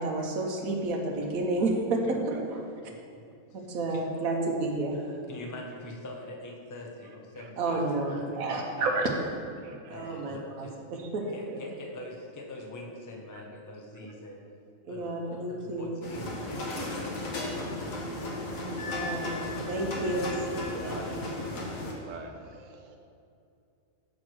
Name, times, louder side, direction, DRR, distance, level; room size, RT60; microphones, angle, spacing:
voice 1, 0.0-2.2 3.5-5.1 7.6-9.1 9.9-11.4 14.8-15.9 18.9-19.3 19.7-20.4, right 2 dB, 90° right, 1 dB, 1.3 m, -30 dB
voice 2, 2.1-2.4 3.3-3.4 7.0-7.8 9.6-10.0 13.3-13.4 20.1-21.3 21.9-23.1, right 4 dB, 45° right, 3 dB, 0.6 m, -46 dB
voice 3, 3.6-4.0 5.3-9.0 9.9-10.8 11.2-14.4 14.9-18.3 19.1-19.7 20.8-21.3, left 1 dB, 20° left, 0 dB, 0.6 m, -44 dB
sound 1, 16.0-21.9, left 1 dB, 75° left, 1.5 m, -35 dB
Wind instrument woodwind instrument, 18.8-20.8, left 3 dB, 60° left, 1.0 m, -41 dB
6.1 x 4.9 x 6.0 m, 2.5 s
omnidirectional pair, 1.4 m